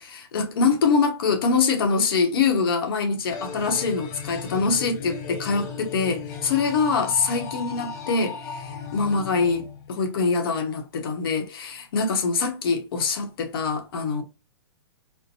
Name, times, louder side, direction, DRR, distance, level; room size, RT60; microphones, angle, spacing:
voice 1, 0.0-14.2, left 4 dB, 65° left, 0.9 m, -24 dB
sound 1, 3.3-10.3, left 6 dB, 40° left, 0.6 m, -36 dB
4.4 x 2.1 x 2.7 m
hypercardioid pair, 150°, 13 cm